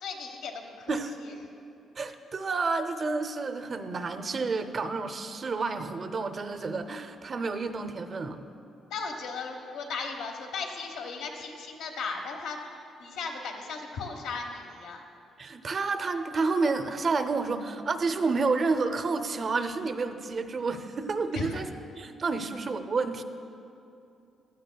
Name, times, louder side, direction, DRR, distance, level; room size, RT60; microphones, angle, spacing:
voice 1, 0.0-1.0 1.2-1.3 8.9-12.6 13.0-15.0 21.3-21.6, left 4 dB, 85° left, 2 dB, 1.2 m, -36 dB
voice 2, 0.9-1.2 2.0-8.4 15.4-21.7 22.0-23.2, right 4 dB, 45° right, 8 dB, 0.6 m, -30 dB
16.0 x 12.5 x 2.3 m, 2.7 s
cardioid pair, 90°, 0 cm